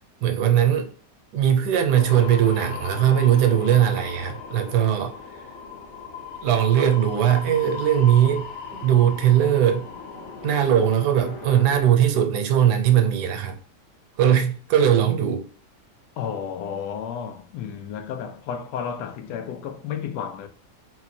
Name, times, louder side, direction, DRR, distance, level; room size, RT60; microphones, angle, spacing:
voice 1, 0.2-0.9 1.3-5.1 6.4-9.8 10.4-13.6 14.2-15.5, right 10 dB, 75° right, 1.3 m, -20 dB
sound 1, 1.9-11.8, left 5 dB, 45° left, 0.9 m, -37 dB
voice 2, 16.2-20.5, left 7 dB, 80° left, 1.2 m, -32 dB
4.2 x 2.2 x 4.2 m
omnidirectional pair, 1.8 m